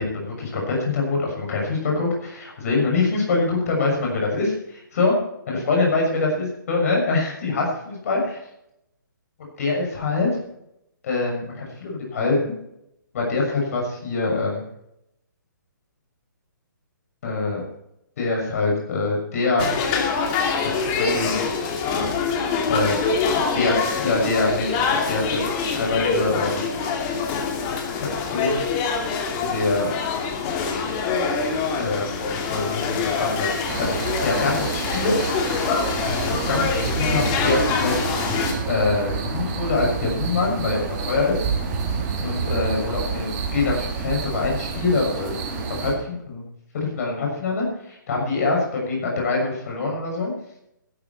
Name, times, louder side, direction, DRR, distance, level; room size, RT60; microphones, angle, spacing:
voice 1, 0.0-5.1 5.5-8.2 9.6-10.3 11.0-12.6 13.1-14.6 17.2-17.6 18.2-19.7 20.6-21.3 22.7-23.0 23.5-26.7 28.2-28.6 29.4-29.9 31.8-33.9 34.2-35.2 36.3-37.9 38.7-41.4 42.2-46.4 46.7-50.3, left 3 dB, 50° left, 0 dB, 6.5 m, -24 dB
sound 1, 19.6-38.5, left 5 dB, 25° left, 2.4 m, -25 dB
sound 2, 33.7-45.9, right 4 dB, 30° right, 2.9 m, -28 dB
13.5 x 12.5 x 4.3 m, 0.79 s
figure-of-eight pair, 135°, 11 cm